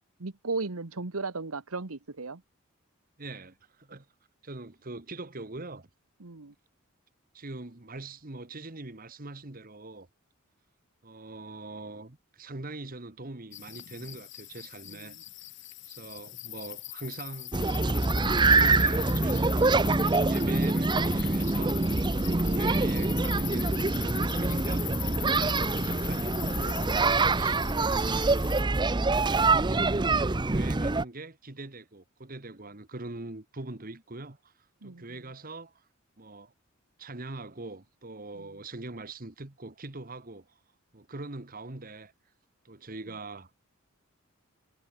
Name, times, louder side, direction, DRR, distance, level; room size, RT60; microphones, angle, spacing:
voice 1, 0.2-2.4 6.2-6.5 14.8-15.2 34.8-35.0 38.4-38.5, right 3 dB, 85° right, 1.3 m, -36 dB
voice 2, 3.2-4.0 4.4-5.9 7.3-10.1 11.0-15.1 15.9-17.5 18.2-19.9 20.3-22.1 22.4-28.6 29.5-34.5 34.8-35.7 36.2-36.5 37.0-40.5 40.9-42.1 42.6-43.5, right 2 dB, 40° right, 1.5 m, -42 dB
sound 1, 13.5-28.6, left 16 dB, 55° left, 2.6 m, -40 dB
sound 2, 17.5-31.0, right 3 dB, 20° right, 0.6 m, -25 dB
head